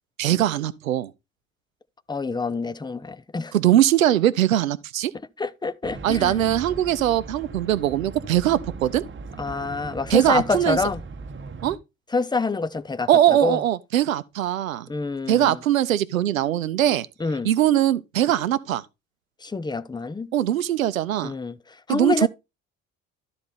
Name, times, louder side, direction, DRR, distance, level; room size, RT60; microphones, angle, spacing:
voice 1, 0.2-1.1 3.5-5.1 6.0-9.0 10.1-10.8 11.6-11.8 13.1-14.9 15.3-17.1 17.4-18.8 20.3-21.3 21.9-22.3, right 12 dB, 90° right, 0.6 m, -21 dB
voice 2, 2.1-3.5 5.4-6.4 9.4-11.0 12.1-13.6 14.9-15.6 17.2-17.5 19.4-20.3 21.2-21.6 21.9-22.3, left 3 dB, 10° left, 0.6 m, -27 dB
sound 1, 5.8-11.8, right 4 dB, 30° right, 1.2 m, -38 dB
12.5 x 4.4 x 4.0 m
hypercardioid pair, 55°, 40 cm